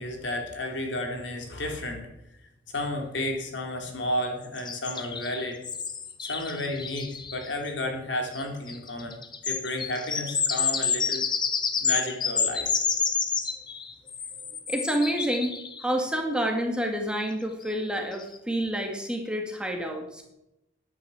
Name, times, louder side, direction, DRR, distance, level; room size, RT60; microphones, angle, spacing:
voice 1, 0.0-2.1 2.7-5.6 6.2-11.2 11.8-12.8, left 1 dB, 65° left, 3 dB, 3.6 m, -32 dB
sound 1, 4.6-7.5 8.3-8.4 8.7-15.9 17.7-17.8 18.1-18.4, left 6 dB, 25° left, 1.2 m, -29 dB
voice 2, 14.7-15.6 15.8-20.3, equal, 5° right, 2 dB, 2.0 m, -28 dB
12.5 x 10.0 x 8.7 m, 0.88 s
head